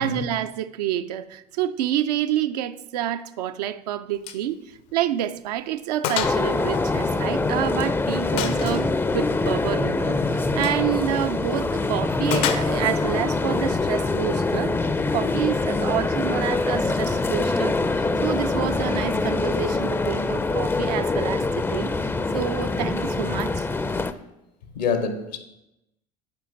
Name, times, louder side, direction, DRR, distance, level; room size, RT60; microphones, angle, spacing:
voice 1, 0.0-14.7 15.1-23.7, right 11 dB, 75° right, 0.5 m, -28 dB
Gunshot gunfire, 4.2-4.5 4.8-4.9 5.4-5.5 6.0-6.4 6.7-7.7 8.4-8.9 10.5-10.8 12.3-13.0, left 10 dB, 60° left, 0.7 m, -29 dB
sound 1, 6.2-24.1, left 3 dB, 10° left, 0.4 m, -24 dB
voice 2, 24.7-25.4, left 5 dB, 80° left, 1.1 m, -26 dB
7.5 x 5.0 x 5.8 m
hypercardioid pair, 70°, 21 cm